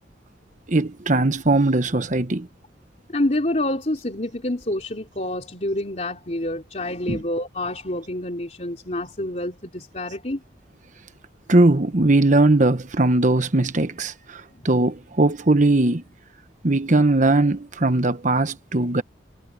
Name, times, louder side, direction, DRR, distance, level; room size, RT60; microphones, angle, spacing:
voice 1, 0.7-2.5 7.1-7.2 11.5-16.0 16.6-19.0, right 2 dB, 45° right, 1.2 m, -19 dB
voice 2, 3.1-10.4, left 1 dB, 40° left, 3.6 m, -27 dB
head